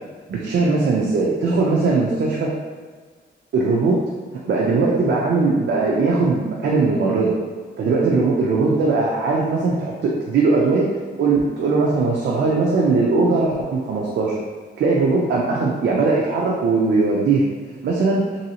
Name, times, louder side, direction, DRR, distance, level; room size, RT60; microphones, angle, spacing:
voice 1, 0.3-2.5 3.5-4.0 4.4-7.3 7.8-14.3 14.8-17.4 17.8-18.2, right 3 dB, 80° right, -3 dB, 0.4 m, -19 dB
3.0 x 2.7 x 2.8 m, 1.5 s
wide cardioid pair, 140°, 18 cm